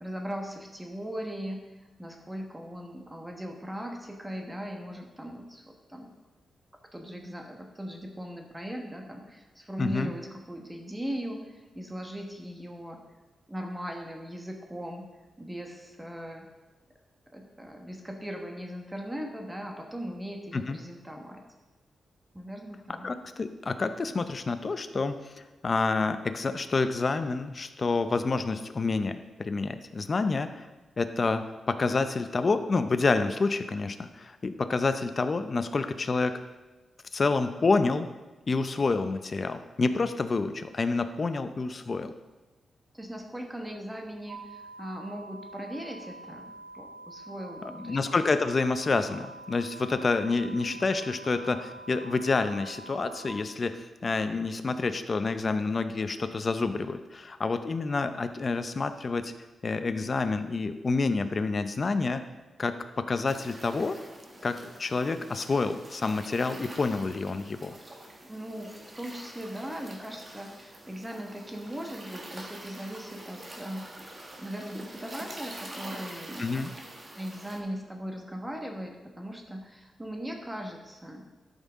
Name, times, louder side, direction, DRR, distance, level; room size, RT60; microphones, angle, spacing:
voice 1, 0.0-1.6 2.0-6.1 6.9-13.0 13.5-15.1 15.4-16.5 17.3-21.4 22.3-23.1 42.9-46.5 46.7-48.0 50.4-50.8 68.3-74.1 74.4-76.5 77.2-81.2, equal, 10° right, 2 dB, 1.3 m, -39 dB
voice 2, 9.8-10.1 20.5-20.8 23.0-25.3 25.6-30.7 31.0-36.3 37.1-38.1 38.5-42.1 47.8-59.3 59.6-62.2 62.6-64.0 64.4-67.8 76.4-76.7, left 3 dB, 35° left, 9 dB, 0.6 m, -28 dB
sound 1, 44.3-53.3, right 2 dB, 65° right, 0.8 m, -46 dB
sound 2, 63.3-77.6, right 1 dB, 30° right, 1.5 m, -46 dB
12.5 x 5.6 x 3.6 m, 1.1 s
cardioid pair, 110°, 0 cm